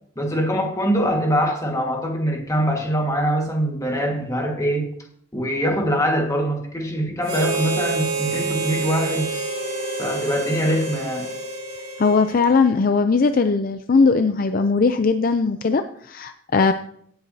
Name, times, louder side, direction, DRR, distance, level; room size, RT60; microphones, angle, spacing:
voice 1, 0.1-4.9 5.3-9.3 10.0-11.3, equal, 15° left, 1 dB, 1.5 m, -23 dB
Harmonica, 7.2-12.7, right 3 dB, 25° right, 2.6 m, -28 dB
voice 2, 12.0-16.7, left 4 dB, 45° left, 9 dB, 0.4 m, -19 dB
16.5 x 7.9 x 2.7 m, 0.66 s
head